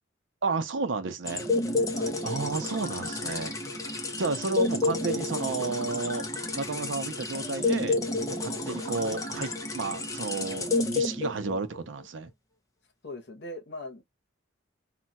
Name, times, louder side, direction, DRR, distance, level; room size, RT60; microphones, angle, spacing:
voice 1, 0.4-1.5 2.2-3.5 4.2-6.3 6.5-8.0 8.3-12.3, right 4 dB, 75° right, 0.6 m, -32 dB
sound 1, 1.3-11.8, left 2 dB, 20° left, 0.6 m, -30 dB
voice 2, 13.0-14.0, left 2 dB, 60° left, 0.8 m, -40 dB
2.3 x 2.2 x 3.9 m
head